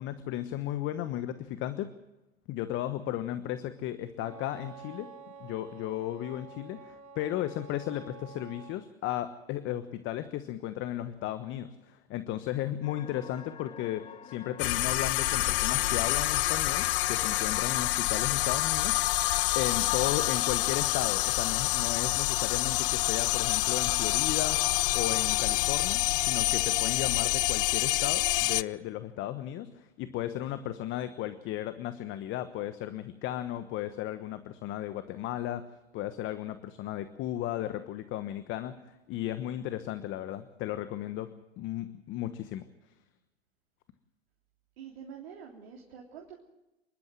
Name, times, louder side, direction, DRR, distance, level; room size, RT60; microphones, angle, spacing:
voice 1, 0.0-1.9 2.5-5.1 5.4-19.2 19.5-24.6 24.9-35.6 35.9-42.7, left 12 dB, 40° left, 11 dB, 1.2 m, -35 dB
Wind instrument woodwind instrument, 4.2-8.8, right 5 dB, 35° right, 7.0 m, -49 dB
sound 1, 12.8-18.0, left 8 dB, 15° left, 0.8 m, -48 dB
sound 2, 14.6-28.6, left 18 dB, 55° left, 0.7 m, -27 dB
voice 2, 44.8-46.4, right 7 dB, 65° right, 0 dB, 3.4 m, -46 dB
28.0 x 12.0 x 7.7 m, 1.0 s
hypercardioid pair, 100°, 32 cm